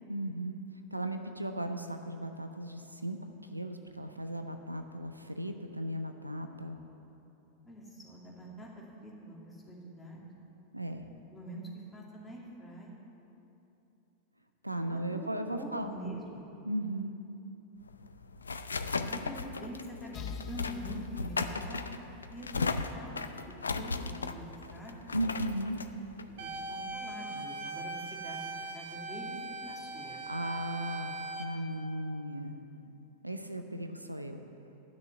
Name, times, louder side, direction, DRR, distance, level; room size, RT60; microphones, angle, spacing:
voice 1, 0.1-0.6 0.9-6.8 10.7-11.0 14.6-15.9 16.7-17.1 25.1-25.8 30.1-32.6 33.2-34.4, right 1 dB, 85° right, 7 dB, 0.6 m, -36 dB
voice 2, 7.6-10.2 11.3-13.0 14.8-16.5 19.1-21.9 22.3-23.2 23.5-25.1 26.4-28.4 28.7-30.2, equal, 10° left, -4 dB, 2.5 m, -45 dB
sound 1, 17.8-27.1, left 4 dB, 75° left, 0.4 m, -37 dB
sound 2, 20.1-23.8, left 7 dB, 35° left, 0.6 m, -46 dB
sound 3, 26.4-31.4, right 3 dB, 55° right, 1.3 m, -40 dB
10.5 x 6.4 x 9.2 m, 2.9 s
figure-of-eight pair, 90°, 0 cm